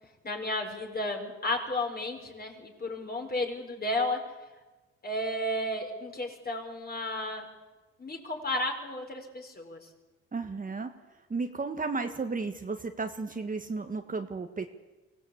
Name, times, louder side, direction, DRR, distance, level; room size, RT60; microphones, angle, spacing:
voice 1, 0.2-4.2 5.0-7.4 8.0-9.8, left 1 dB, 30° left, 3 dB, 5.0 m, -33 dB
voice 2, 10.3-10.9 11.3-14.7, right 4 dB, 25° right, 6 dB, 1.5 m, -33 dB
24.0 x 17.0 x 8.5 m, 1.2 s
cardioid pair, 90°, 30 cm